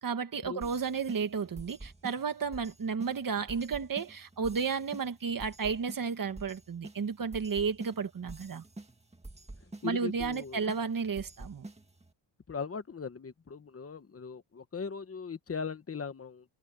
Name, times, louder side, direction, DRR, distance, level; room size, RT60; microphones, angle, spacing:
voice 1, 0.0-8.6 9.8-11.7, right 5 dB, 40° right, 1.8 m, -33 dB
sound 1, 0.6-12.1, right 2 dB, 15° right, 2.0 m, -48 dB
voice 2, 9.8-10.7 12.5-16.4, left 5 dB, 30° left, 1.2 m, -39 dB
wide cardioid pair, 160°, 49 cm